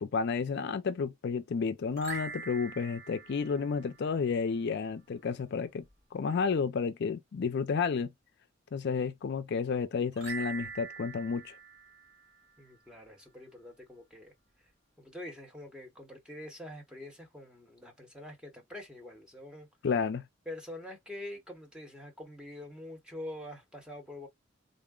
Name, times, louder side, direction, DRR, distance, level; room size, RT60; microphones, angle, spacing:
voice 1, 0.0-5.8 6.1-8.1 8.7-11.6 19.8-20.2, left 5 dB, 60° left, 0.4 m, -31 dB
sound 1, 1.9-4.4 10.1-12.8, right 5 dB, 60° right, 2.3 m, -44 dB
voice 2, 12.6-14.3 15.0-19.7 20.5-24.3, left 1 dB, 5° right, 1.0 m, -45 dB
3.7 x 2.1 x 3.6 m
head